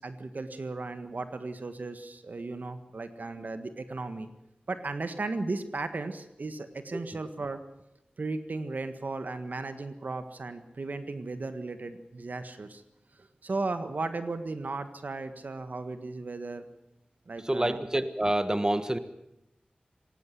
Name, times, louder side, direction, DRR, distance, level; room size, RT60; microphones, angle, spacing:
voice 1, 0.0-4.3 4.7-7.6 8.2-12.8 13.1-16.7 17.3-17.9, right 3 dB, 70° right, 9 dB, 1.6 m, -36 dB
voice 2, 17.4-19.0, right 1 dB, 25° right, 11 dB, 1.4 m, -27 dB
18.5 x 16.5 x 9.4 m, 0.88 s
wide cardioid pair, 50°, 3 cm